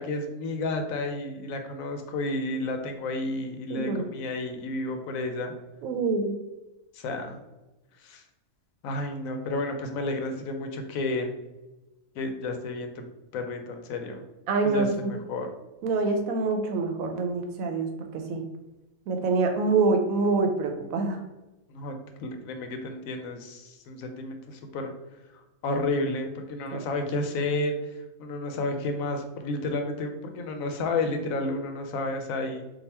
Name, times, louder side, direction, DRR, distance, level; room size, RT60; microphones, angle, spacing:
voice 1, 0.0-5.5 6.9-7.4 8.0-8.2 8.8-11.3 12.1-13.0 13.3-14.2 14.6-15.5 21.7-24.9 25.3-32.6, left 2 dB, 90° left, 5 dB, 1.0 m, -31 dB
voice 2, 3.7-4.0 5.8-6.3 14.5-15.1 15.8-18.4 19.1-21.2 26.7-26.8, right 3 dB, 90° right, 5 dB, 1.1 m, -26 dB
3.8 x 2.3 x 4.1 m, 1.0 s
omnidirectional pair, 1.4 m